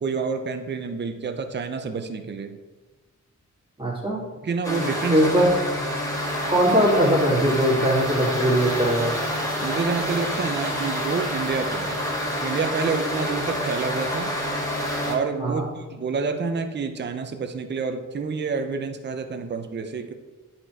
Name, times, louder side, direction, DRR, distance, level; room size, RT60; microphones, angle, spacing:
voice 1, 0.0-2.6 4.4-5.3 9.6-12.0 12.4-14.3 15.0-20.1, right 5 dB, 35° right, 6 dB, 0.6 m, -28 dB
voice 2, 3.8-4.2 5.1-5.5 6.5-9.1 15.4-15.6, right 1 dB, 15° right, -5 dB, 2.3 m, -20 dB
sound 1, 4.6-15.1, equal, 10° left, 2.3 m, -28 dB
10.5 x 4.4 x 4.5 m, 1.2 s
wide cardioid pair, 135°, 31 cm